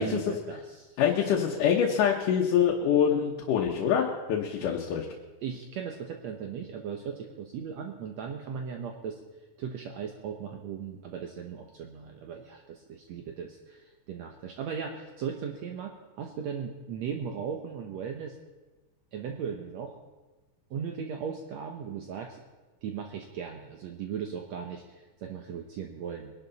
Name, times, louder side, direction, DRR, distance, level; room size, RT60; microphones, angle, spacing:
voice 1, 0.0-1.0 5.4-9.2 9.6-18.4 19.1-20.0 20.7-22.4 22.8-26.3, right 7 dB, 65° right, 3 dB, 1.9 m, -37 dB
voice 2, 1.0-5.1, left 8 dB, 80° left, 0 dB, 2.7 m, -25 dB
23.0 x 11.5 x 4.1 m, 1.2 s
omnidirectional pair, 3.7 m